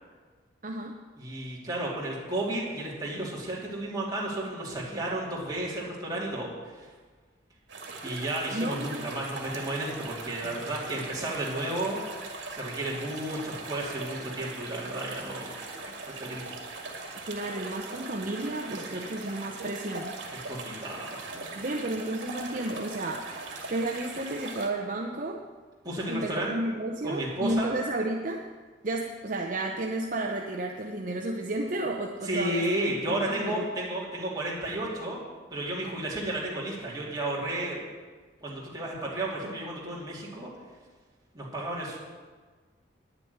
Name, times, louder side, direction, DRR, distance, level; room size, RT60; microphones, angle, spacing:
voice 1, 0.6-1.0 8.0-8.2 8.5-9.0 17.2-20.2 21.6-23.4 23.7-25.4 26.1-28.5 28.8-32.6 33.1-33.7, right 2 dB, 40° right, 1 dB, 0.8 m, -32 dB
voice 2, 1.2-6.9 8.0-12.0 12.5-15.5 15.8-16.5 18.9-19.1 20.5-21.2 25.8-26.5 27.0-27.7 32.2-35.2 35.5-37.8 38.4-40.5 41.3-42.0, right 1 dB, 20° right, -5 dB, 2.9 m, -33 dB
sound 1, 7.7-24.7, right 3 dB, 65° right, 2.1 m, -40 dB
10.5 x 6.9 x 9.4 m, 1.5 s
head